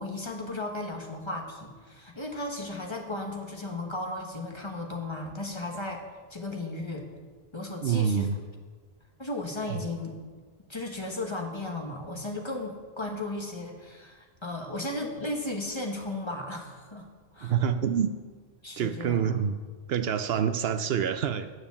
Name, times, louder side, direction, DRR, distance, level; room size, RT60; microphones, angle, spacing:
voice 1, 0.0-6.0 6.3-7.1 7.5-8.3 9.2-10.2 10.7-17.1 17.3-17.6 18.6-19.3, left 2 dB, 25° left, 2 dB, 1.2 m, -35 dB
voice 2, 7.8-8.4 17.4-18.1 18.8-19.6 19.9-21.5, right 8 dB, 70° right, 10 dB, 0.8 m, -26 dB
9.6 x 6.9 x 7.0 m, 1.4 s
omnidirectional pair, 1.1 m